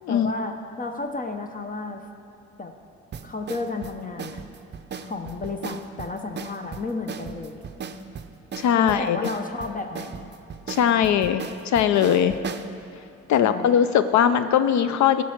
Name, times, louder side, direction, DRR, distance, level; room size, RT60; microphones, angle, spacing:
voice 1, 0.1-2.0 2.6-2.7 3.2-4.4 4.9-7.6 8.8-10.3 13.4-13.8, left 3 dB, 25° left, 5 dB, 0.7 m, -32 dB
sound 1, 3.1-12.7, right 6 dB, 35° right, 0.5 m, -37 dB
voice 2, 8.6-9.2 10.7-12.3 13.3-15.2, left 9 dB, 65° left, 11 dB, 0.5 m, -20 dB
13.0 x 5.4 x 6.5 m, 2.6 s
cardioid pair, 90°, 30 cm